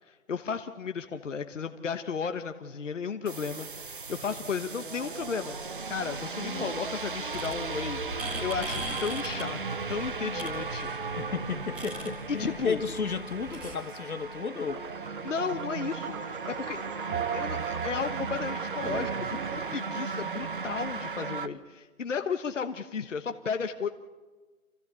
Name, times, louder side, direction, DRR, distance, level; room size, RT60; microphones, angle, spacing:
voice 1, 0.1-5.5 5.9-8.0 8.4-9.6 9.9-10.9 12.3-12.8 15.2-16.8 17.3-23.9, left 6 dB, 55° left, 1.2 m, -34 dB
sound 1, 3.3-21.5, right 4 dB, 35° right, 0.8 m, -36 dB
voice 2, 6.4-6.8 11.2-14.8, left 5 dB, 75° left, 1.6 m, -33 dB
sound 2, 7.3-13.7, equal, 5° right, 2.0 m, -41 dB
sound 3, 14.7-19.7, right 8 dB, 70° right, 0.9 m, -37 dB
27.5 x 16.0 x 8.4 m
hypercardioid pair, 170°, 44 cm